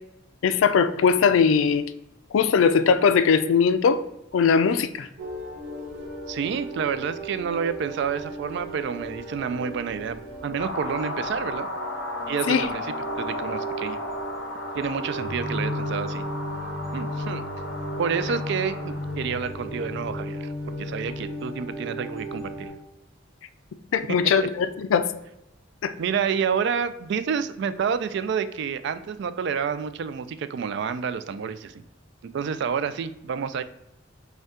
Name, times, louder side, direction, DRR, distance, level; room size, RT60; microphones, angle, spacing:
voice 1, 0.4-1.8 2.3-4.0 4.3-5.1 12.5-12.7 23.9-25.1 25.8-25.9, left 6 dB, 85° left, 12 dB, 0.4 m, -20 dB
sound 1, 5.2-22.7, equal, 90° right, 1.2 m, -35 dB
voice 2, 6.3-10.2 10.4-11.7 12.3-12.9 13.2-14.0 14.7-16.3 16.9-17.4 18.0-22.7 26.0-31.8 32.3-33.6, right 6 dB, 60° right, 12 dB, 0.3 m, -29 dB
sound 2, 10.6-19.3, left 1 dB, 60° left, 0.8 m, -34 dB
5.2 x 2.3 x 3.6 m, 0.88 s
head